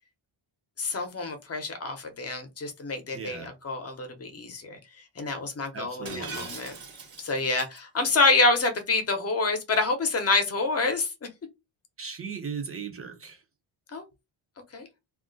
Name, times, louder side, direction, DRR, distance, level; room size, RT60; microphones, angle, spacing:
voice 1, 0.8-4.8 5.2-6.7 7.2-11.1 13.9-14.0 14.7-14.9, left 3 dB, 30° left, 0.7 m, -27 dB
voice 2, 3.1-3.5 5.7-6.5 12.0-13.4, right 6 dB, 30° right, 0.6 m, -37 dB
Shatter, 6.1-7.8, right 4 dB, 85° right, 1.1 m, -41 dB
2.4 x 2.1 x 3.8 m
wide cardioid pair, 150°, 50 cm